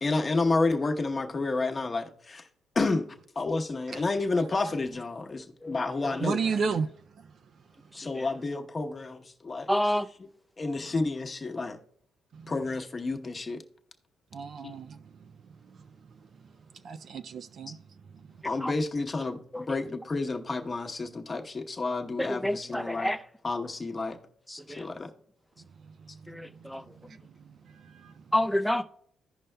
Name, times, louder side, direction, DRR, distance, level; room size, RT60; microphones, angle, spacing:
voice 1, 0.0-2.4 2.7-3.1 3.4-6.4 6.7-6.8 7.9-9.7 10.6-11.8 12.5-13.6 14.6-14.7 18.4-23.1 23.4-24.2 24.8-25.1, left 3 dB, 30° left, 0.9 m, -30 dB
voice 2, 6.2-6.9 14.3-14.9 16.9-17.8, right 5 dB, 55° right, 0.4 m, -30 dB
voice 3, 9.7-10.1 18.6-18.7 19.5-19.8 22.2-23.2 24.5-24.8 26.3-26.8 28.3-28.8, left 1 dB, 5° left, 0.5 m, -29 dB
15.5 x 5.4 x 2.2 m
cardioid pair, 90°, 0 cm